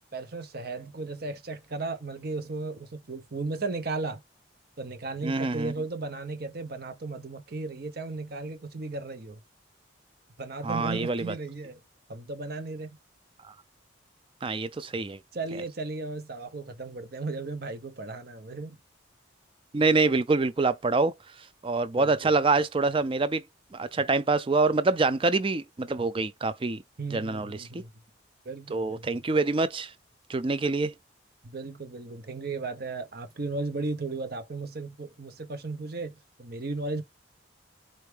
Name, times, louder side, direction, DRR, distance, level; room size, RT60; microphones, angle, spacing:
voice 1, 0.1-4.2 4.8-9.4 10.4-11.8 12.1-13.0 15.3-18.8 22.0-22.3 27.0-27.9 28.4-29.1 31.4-37.0, right 3 dB, 50° right, 0.8 m, -35 dB
voice 2, 5.2-5.7 10.6-11.2 14.4-15.2 19.7-21.1 21.6-23.4 23.7-26.8 27.1-27.8 28.7-29.9 30.3-30.9, right 3 dB, 25° right, 0.4 m, -25 dB
4.5 x 2.6 x 3.3 m
head